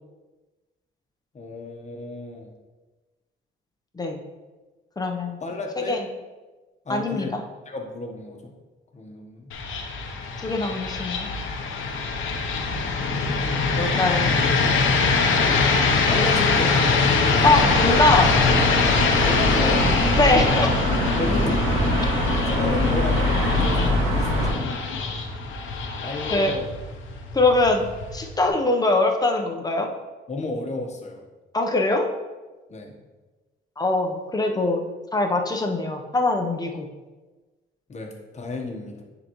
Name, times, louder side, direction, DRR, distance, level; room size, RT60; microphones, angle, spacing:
voice 1, 1.3-2.5 5.4-6.0 6.8-7.4 7.7-8.5 8.9-9.6 16.1-16.8 19.2-19.9 21.2-21.7 22.5-24.8 26.0-26.8 30.3-31.2 32.7-32.9 37.9-39.0, left 2 dB, 35° left, 2 dB, 1.2 m, -32 dB
voice 2, 5.0-5.4 5.9-6.0 6.9-7.4 10.4-11.3 13.8-14.3 16.2-16.7 17.4-18.3 20.2-20.7 26.3-26.5 27.3-27.9 28.1-29.9 31.5-32.1 33.8-34.8 35.1-36.9, left 2 dB, 20° left, 3 dB, 0.9 m, -22 dB
sound 1, 9.5-28.5, left 4 dB, 80° left, 0.9 m, -23 dB
sound 2, 17.4-24.5, equal, 80° right, 1.6 m, -24 dB
10.0 x 4.0 x 3.1 m, 1.2 s
cardioid pair, 90°, 20 cm